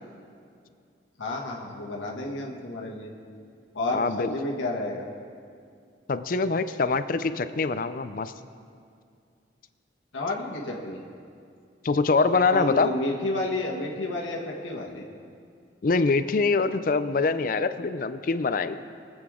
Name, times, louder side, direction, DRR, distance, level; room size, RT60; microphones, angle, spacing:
voice 1, 1.2-3.1 3.7-5.0 10.1-11.0 12.5-15.0, left 2 dB, 90° left, -1 dB, 1.4 m, -31 dB
voice 2, 3.9-4.3 6.1-8.3 11.8-12.9 15.8-18.8, left 4 dB, 45° left, 12 dB, 0.4 m, -24 dB
22.5 x 8.0 x 3.7 m, 2.3 s
head